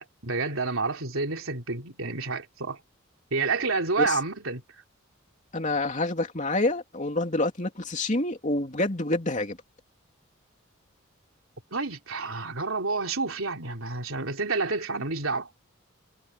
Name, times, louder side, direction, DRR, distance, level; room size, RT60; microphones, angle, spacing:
voice 1, 0.0-2.8 3.3-4.6 11.7-15.5, right 3 dB, 85° right, 3.4 m, -29 dB
voice 2, 5.5-9.6, left 2 dB, 35° left, 3.0 m, -27 dB
head